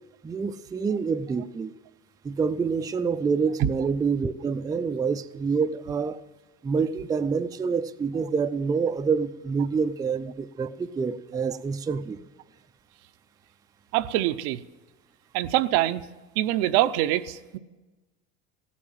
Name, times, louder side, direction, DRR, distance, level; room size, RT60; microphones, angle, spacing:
voice 1, 0.2-1.7 2.2-6.2 6.6-12.3, right 5 dB, 10° right, 9 dB, 0.4 m, -27 dB
voice 2, 13.9-14.6 15.3-16.0 16.4-17.6, right 14 dB, 75° right, 11 dB, 0.7 m, -24 dB
16.0 x 8.7 x 8.9 m, 1.2 s
supercardioid pair, 115°, 32 cm